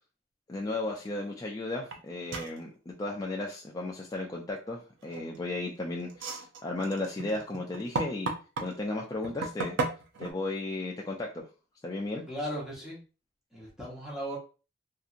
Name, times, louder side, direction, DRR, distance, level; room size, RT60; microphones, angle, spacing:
voice 1, 0.5-8.3 8.6-9.8 10.2-11.4 11.8-12.2, left 2 dB, 20° left, -1 dB, 0.3 m, -35 dB
sound 1, 1.9-2.0 2.3-2.6 5.0-5.5 6.1-8.7 9.2-10.3, right 3 dB, 80° right, 0.5 m, -34 dB
voice 2, 12.3-13.0 13.5-14.4, equal, 5° right, -5 dB, 0.9 m, -37 dB
2.8 x 2.5 x 2.5 m, 0.34 s
head